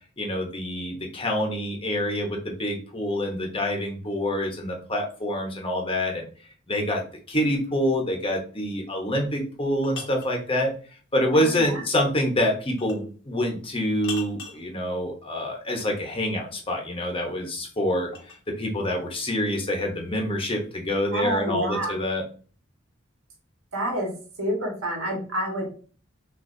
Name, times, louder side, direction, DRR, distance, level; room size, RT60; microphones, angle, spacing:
voice 1, 0.2-6.3 6.7-7.0 7.3-10.7 11.1-22.2, left 1 dB, 25° left, 1 dB, 1.0 m, -26 dB
sound 1, 9.4-10.4 12.8-13.1 14.0-14.7 16.9-18.5, left 5 dB, 60° left, 1.0 m, -40 dB
voice 2, 11.3-11.8 21.1-22.0 23.7-24.1 24.4-25.6, right 1 dB, 80° right, 0 dB, 1.7 m, -28 dB
6.4 x 2.7 x 2.7 m, 0.40 s
head